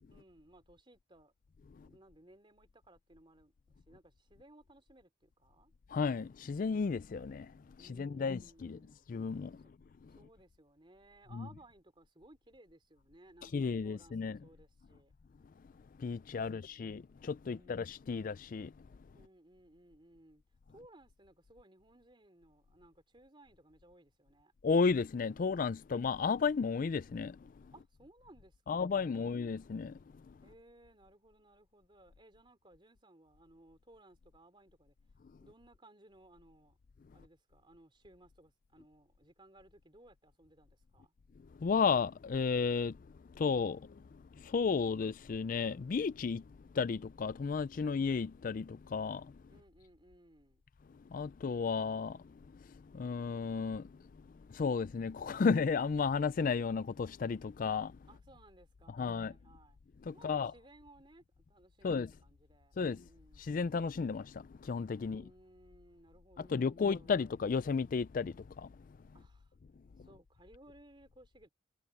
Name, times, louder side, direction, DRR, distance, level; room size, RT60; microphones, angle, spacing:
voice 1, 0.1-1.3 1.8-5.7 7.8-9.1 10.2-15.1 16.4-16.9 17.4-17.9 19.1-20.4 20.7-24.5 27.7-29.4 30.4-35.0 35.4-36.8 37.1-41.1 49.5-50.6 58.1-59.8 60.1-63.5 65.0-67.2 69.1-69.6 70.0-71.5, right 1 dB, 25° right, 3.5 m, -61 dB
voice 2, 5.9-7.5 8.0-8.8 9.1-9.6 11.3-11.5 13.5-14.4 16.0-18.7 24.6-27.4 28.7-30.0 41.6-43.0 43.4-43.9 44.4-46.4 46.7-49.3 51.1-52.2 52.9-53.9 54.5-57.9 59.0-59.3 60.1-60.5 61.8-62.1 62.8-63.0 63.4-65.2 66.4-68.7, left 5 dB, 45° left, 0.3 m, -33 dB
head